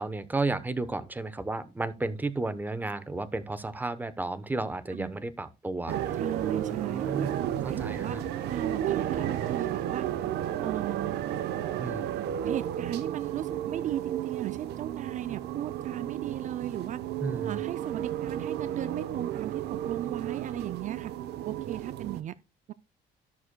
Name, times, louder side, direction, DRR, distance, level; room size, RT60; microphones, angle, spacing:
voice 1, 0.0-8.2 11.8-12.1 17.2-17.6, right 2 dB, 10° right, 0.8 m, -33 dB
sound 1, 5.9-22.2, right 11 dB, 80° right, 0.9 m, -33 dB
voice 2, 6.1-7.3 7.7-8.2 8.5-10.1 10.6-11.2 12.4-17.0 17.4-21.1 21.4-22.4 22.7-22.8, right 11 dB, 45° right, 0.4 m, -36 dB
14.0 x 6.4 x 2.2 m
cardioid pair, 110°, 17 cm